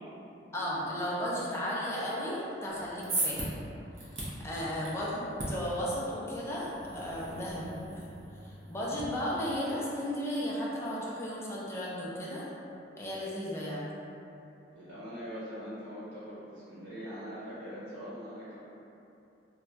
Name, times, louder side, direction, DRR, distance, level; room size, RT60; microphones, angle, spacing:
voice 1, 0.5-3.5 4.0-6.7 6.9-8.0 8.4-12.5 13.0-13.9, equal, 15° left, -6 dB, 0.4 m, -35 dB
sound 1, 2.7-9.0, right 2 dB, 35° right, 0.6 m, -39 dB
voice 2, 14.7-18.6, equal, 85° right, -12 dB, 0.9 m, -42 dB
2.3 x 2.2 x 3.9 m, 2.8 s
head